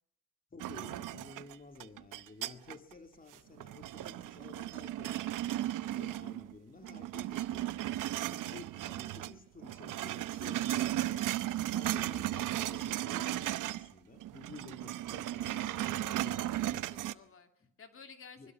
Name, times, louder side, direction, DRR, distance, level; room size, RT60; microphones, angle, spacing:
voice 1, 0.5-5.2 5.8-7.7 8.2-11.3 11.7-16.8 17.6-17.7 18.4-18.5, left 4 dB, 25° left, 6 dB, 2.5 m, -52 dB
sound 1, 0.6-2.9 3.3-6.5 6.8-9.3 9.6-13.9 14.2-17.1, right 14 dB, 85° right, 0.9 m, -36 dB
voice 2, 11.7-12.1 15.4-18.5, left 5 dB, 45° left, 6 dB, 2.7 m, -56 dB
25.0 x 21.0 x 6.1 m, 0.74 s
cardioid pair, 100°, 31 cm